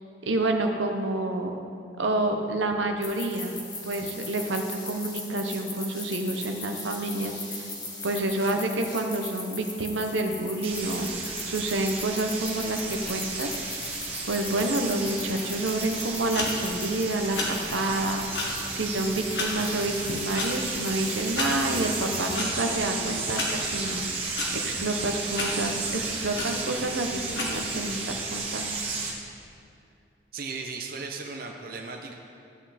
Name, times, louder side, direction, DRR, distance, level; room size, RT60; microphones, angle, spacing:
voice 1, 0.2-1.6 2.0-3.6 3.8-7.7 8.0-11.1 11.5-13.6 14.3-18.3 18.7-28.7, right 2 dB, 80° right, 4 dB, 0.9 m, -28 dB
sound 1, 3.0-22.3, left 2 dB, 20° left, 1.4 m, -40 dB
sound 2, 10.6-29.1, right 4 dB, 30° right, 1.4 m, -33 dB
sound 3, 16.3-28.0, left 2 dB, 60° left, 1.7 m, -35 dB
voice 2, 30.3-32.1, right 4 dB, 50° right, 2 dB, 0.8 m, -36 dB
14.0 x 8.3 x 4.2 m, 2.5 s
head